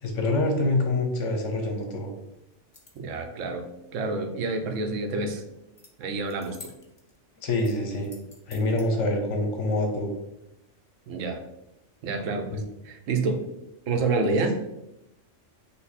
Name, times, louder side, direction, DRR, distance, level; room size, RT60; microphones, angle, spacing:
voice 1, 0.0-2.1 7.4-8.1 8.5-10.1 12.5-12.6 14.3-14.4, left 2 dB, 75° left, 3 dB, 1.2 m, -26 dB
sound 1, 2.5-3.2 5.8-5.9 6.2-7.2 7.6-8.9, left 3 dB, 30° left, 0.5 m, -49 dB
voice 2, 3.0-3.7 3.9-5.4 6.0-6.6 11.1-11.4 12.0-13.4 13.9-14.6, right 3 dB, 90° right, 6 dB, 1.0 m, -28 dB
5.5 x 2.2 x 4.1 m, 0.89 s
omnidirectional pair, 1.3 m